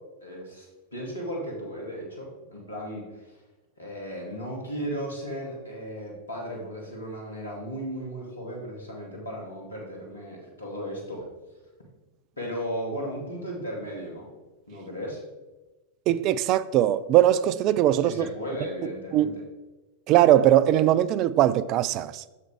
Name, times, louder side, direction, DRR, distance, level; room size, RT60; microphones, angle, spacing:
voice 1, 0.2-3.4 3.8-11.3 12.4-14.3 14.7-15.2 18.0-19.4, equal, 75° left, 2.3 m, -35 dB
voice 2, 16.1-18.3 19.1-19.3 20.1-22.2, right 12 dB, 40° right, 0.3 m, -20 dB
8.2 x 7.2 x 3.5 m
figure-of-eight pair, 90°, 0 cm